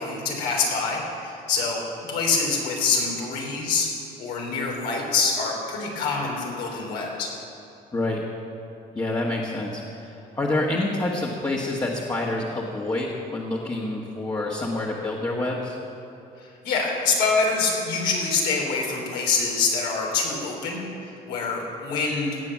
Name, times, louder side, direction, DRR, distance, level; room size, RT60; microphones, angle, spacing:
voice 1, 0.0-1.8 2.1-3.9 4.2-7.3 16.4-22.4, left 4 dB, 90° left, -1 dB, 3.3 m, -25 dB
voice 2, 8.9-15.8, left 2 dB, 20° left, -3 dB, 1.5 m, -27 dB
17.5 x 6.9 x 7.4 m, 2.9 s
cardioid pair, 110°, 17 cm